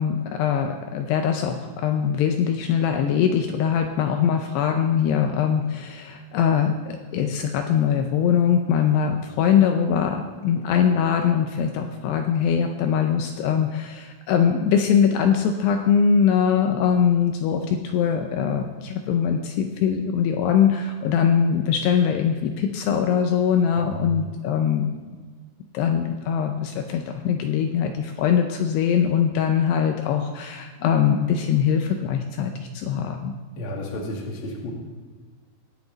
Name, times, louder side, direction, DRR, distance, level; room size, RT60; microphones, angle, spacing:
voice 1, 0.0-24.9 25.7-33.4, left 7 dB, 80° left, 4 dB, 2.6 m, -22 dB
voice 2, 23.7-24.2 33.6-34.7, equal, 40° left, -2 dB, 2.1 m, -32 dB
19.5 x 6.9 x 4.0 m, 1.5 s
omnidirectional pair, 5.0 m